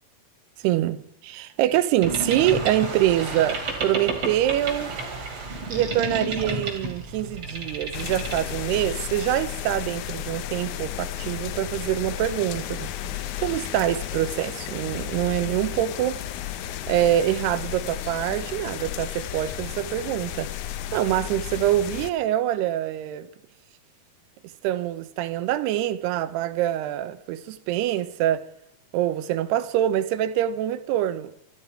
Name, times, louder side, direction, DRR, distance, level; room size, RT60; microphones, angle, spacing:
voice 1, 0.6-4.9 5.7-12.9 13.4-16.2 16.9-20.5 20.9-23.3 24.6-28.4 28.9-31.3, right 12 dB, 90° right, 2.9 m, -25 dB
Boat Water vehicle, 2.0-8.9, right 3 dB, 40° right, 3.4 m, -31 dB
sound 1, 7.9-22.1, left 11 dB, 85° left, 1.7 m, -33 dB
24.0 x 12.0 x 4.7 m
omnidirectional pair, 4.6 m